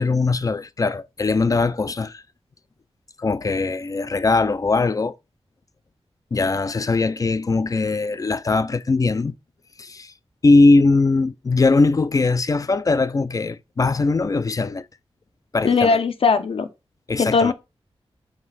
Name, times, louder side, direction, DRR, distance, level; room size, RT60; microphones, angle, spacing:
voice 1, 0.0-2.2 3.2-5.1 6.3-9.3 9.8-10.1 10.4-14.9 15.5-16.0 17.1-17.5, left 3 dB, 35° left, 0.4 m, -20 dB
voice 2, 15.6-16.7 17.2-17.5, left 4 dB, 60° left, 0.9 m, -19 dB
6.5 x 4.3 x 4.1 m
wide cardioid pair, 130°, 11 cm